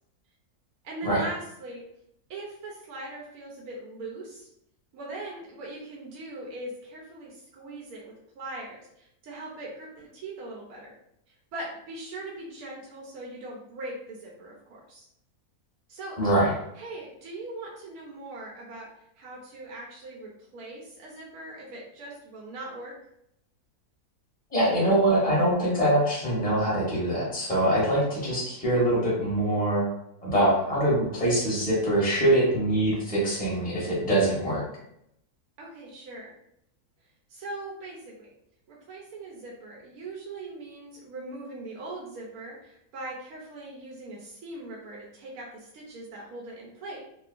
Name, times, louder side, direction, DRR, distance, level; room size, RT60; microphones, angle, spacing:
voice 1, 0.8-1.8 2.3-4.5 4.9-10.9 11.3-15.1 15.9-16.2 16.8-18.9 19.2-22.9 35.6-36.3 37.3-38.3 38.7-47.0, right 2 dB, 75° right, -3 dB, 1.0 m, -40 dB
voice 2, 16.2-16.5 24.5-29.8 30.2-34.6, right 1 dB, 5° left, -7 dB, 0.9 m, -24 dB
2.8 x 2.2 x 2.4 m, 0.77 s
omnidirectional pair, 1.6 m